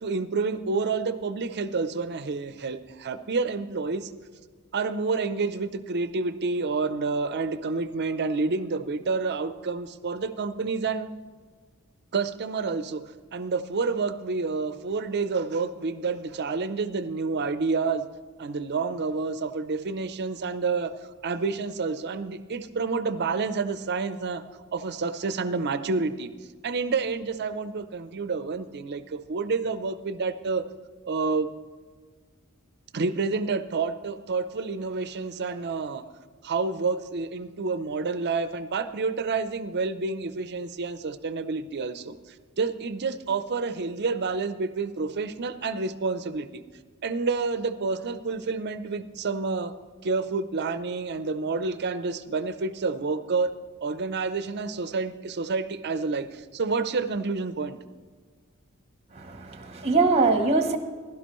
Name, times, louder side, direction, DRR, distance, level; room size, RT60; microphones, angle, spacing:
voice 1, 0.0-4.1 4.7-11.1 12.1-13.0 13.3-18.0 18.4-20.9 21.2-24.4 24.7-26.3 26.6-30.6 31.1-31.5 32.9-36.0 36.4-42.2 42.6-46.6 47.0-49.7 50.0-53.5 53.8-57.8, right 4 dB, 50° right, 12 dB, 0.6 m, -29 dB
voice 2, 59.1-60.8, right 3 dB, 30° right, 7 dB, 0.9 m, -23 dB
16.0 x 12.0 x 3.1 m, 1.5 s
head